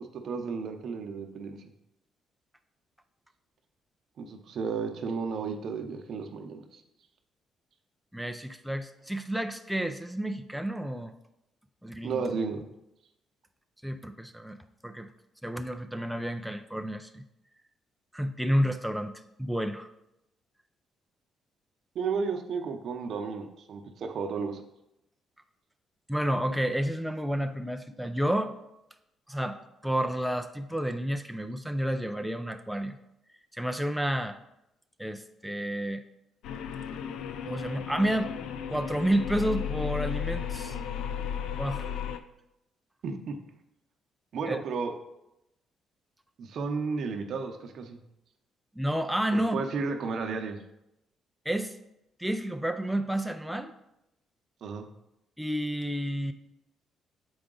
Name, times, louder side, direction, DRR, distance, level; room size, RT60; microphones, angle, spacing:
voice 1, 0.0-1.6 4.2-6.8 12.0-12.7 21.9-24.7 43.0-43.3 44.3-44.9 46.4-48.0 49.3-50.6 54.6-54.9, right 5 dB, 65° right, 4 dB, 0.8 m, -33 dB
voice 2, 8.1-11.1 11.8-12.3 13.8-14.6 14.8-15.1 15.4-17.2 18.1-19.9 26.1-28.5 29.3-33.0 33.5-34.4 35.0-36.0 37.5-38.3 38.7-40.8 41.6-41.9 44.5-44.6 48.8-49.6 51.5-51.7 52.2-53.7 55.4-56.3, right 1 dB, ahead, 6 dB, 0.4 m, -30 dB
sound 1, 36.4-42.2, left 8 dB, 85° left, 0.4 m, -34 dB
6.9 x 4.8 x 3.8 m, 0.87 s
cardioid pair, 90°, 0 cm